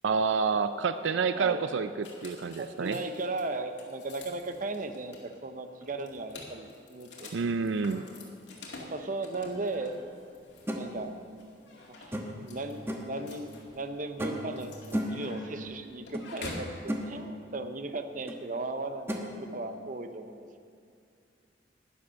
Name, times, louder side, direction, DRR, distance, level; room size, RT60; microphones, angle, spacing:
voice 1, 0.0-1.9 2.2-3.0 7.3-8.1, right 5 dB, 90° right, 11 dB, 0.4 m, -28 dB
voice 2, 1.3-1.7 2.6-7.3 8.9-9.9 10.7-11.1 12.0-20.5, right 2 dB, 45° right, 8 dB, 0.7 m, -37 dB
sound 1, 2.0-16.8, left 2 dB, 75° left, 2.3 m, -48 dB
sound 2, 10.7-10.8 12.1-12.5 12.9-13.1 14.2-14.5 14.9-15.3 16.1-16.3 16.6-17.1 18.3-18.4 19.1-19.2, equal, 15° right, 1.2 m, -33 dB
11.5 x 10.5 x 6.4 m, 2.4 s
head